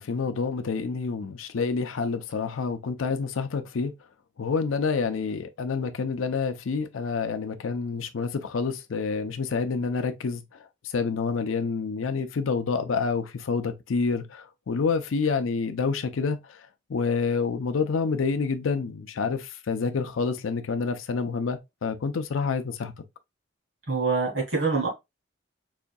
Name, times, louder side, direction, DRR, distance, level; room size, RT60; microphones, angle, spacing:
voice 1, 0.0-3.9 4.4-10.4 10.8-16.6 16.9-22.9, left 5 dB, 90° left, 0.5 m, -28 dB
voice 2, 23.9-24.9, right 4 dB, 70° right, 2.4 m, -25 dB
4.9 x 2.6 x 2.2 m
head